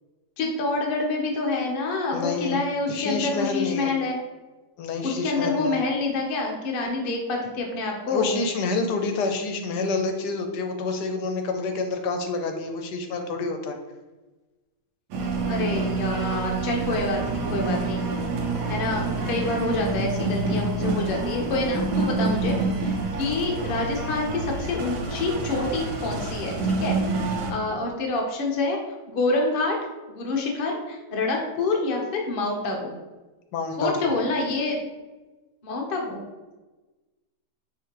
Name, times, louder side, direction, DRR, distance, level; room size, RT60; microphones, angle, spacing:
voice 1, 0.4-4.2 5.0-8.4 15.5-18.0 18.7-27.0 27.5-28.8 29.1-29.8 30.1-33.0 33.8-34.8 35.6-36.2, left 2 dB, 45° left, 0 dB, 0.7 m, -27 dB
voice 2, 2.1-2.6 2.9-3.9 4.8-5.8 8.1-13.8 33.5-34.1, left 3 dB, 80° left, 5 dB, 1.2 m, -28 dB
sound 1, 15.1-27.5, right 3 dB, 85° right, 1.3 m, -27 dB
4.8 x 3.1 x 2.9 m, 1.2 s
omnidirectional pair, 1.8 m